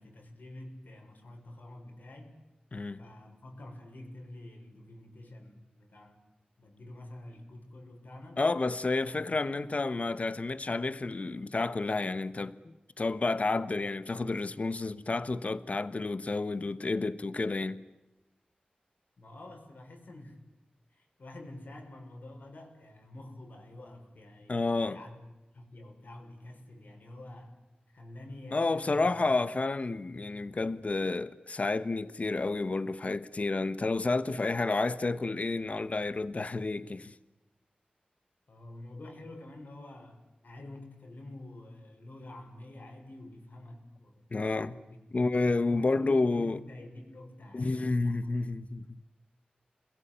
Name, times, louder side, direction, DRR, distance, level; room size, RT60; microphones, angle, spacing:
voice 1, 0.0-2.4 3.0-6.2 6.6-8.5 8.9-9.3 9.8-10.0 19.2-20.4 20.9-25.2 25.5-27.6 27.9-29.4 38.5-48.2, left 1 dB, 80° left, 6.4 m, -48 dB
voice 2, 8.4-17.8 24.5-25.0 28.5-37.1 44.3-44.8 45.1-46.6 47.5-49.0, left 3 dB, 50° left, 1.3 m, -30 dB
29.0 x 21.5 x 9.0 m
wide cardioid pair, 90°, 3 cm